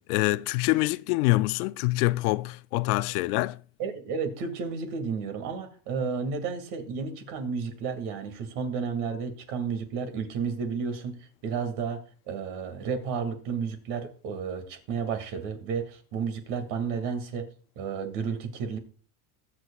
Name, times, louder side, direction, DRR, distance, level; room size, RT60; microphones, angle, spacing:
voice 1, 0.1-3.6, left 21 dB, 75° left, 0.6 m, -25 dB
voice 2, 3.8-17.5 17.8-18.8, right 5 dB, 60° right, 2.2 m, -32 dB
21.5 x 7.7 x 2.3 m
supercardioid pair, 145°, 44 cm